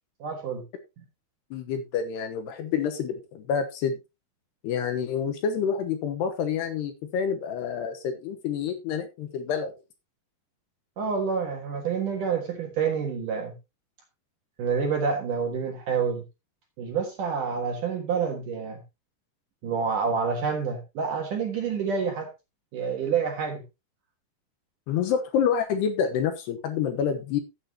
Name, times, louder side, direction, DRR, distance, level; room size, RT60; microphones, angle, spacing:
voice 1, 0.2-0.6 11.0-13.6 14.6-16.2 16.8-18.8 19.6-22.3 22.7-23.6, right 6 dB, 60° right, 3 dB, 2.4 m, -28 dB
voice 2, 1.5-4.0 4.6-9.7 24.9-27.4, left 7 dB, 70° left, 6 dB, 2.9 m, -28 dB
15.0 x 8.1 x 2.9 m, 0.25 s
omnidirectional pair, 5.4 m